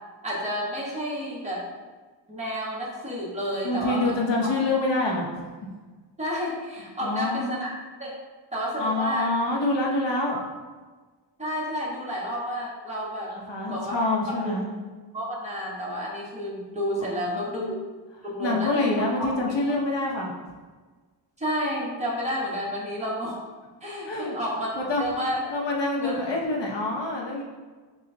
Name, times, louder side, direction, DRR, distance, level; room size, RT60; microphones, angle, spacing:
voice 1, 0.2-1.7 2.3-4.2 6.2-7.7 8.0-8.1 8.5-9.3 10.3-10.4 11.4-13.3 13.7-14.5 15.1-17.8 18.2-19.3 21.4-23.4 23.8-24.7 25.0-25.4 26.0-26.1, equal, 15° right, -5 dB, 1.2 m, -30 dB
voice 2, 3.6-5.3 7.0-7.6 8.8-10.4 13.3-14.7 17.0-17.2 17.6-17.7 18.4-20.3 24.1-24.4 24.8-27.4, left 2 dB, 70° left, -1 dB, 1.0 m, -26 dB
6.9 x 2.4 x 2.7 m, 1.4 s
wide cardioid pair, 95°, 45 cm